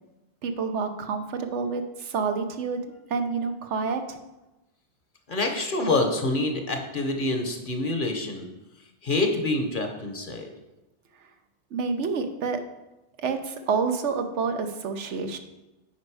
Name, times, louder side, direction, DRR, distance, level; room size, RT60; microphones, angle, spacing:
voice 1, 0.4-2.8 3.1-4.2 11.7-12.6 13.2-15.4, right 5 dB, 90° right, 7 dB, 1.1 m, -28 dB
voice 2, 5.3-8.5 9.0-10.5, left 2 dB, 50° left, 5 dB, 1.1 m, -26 dB
8.6 x 5.2 x 4.8 m, 1.0 s
omnidirectional pair, 1.2 m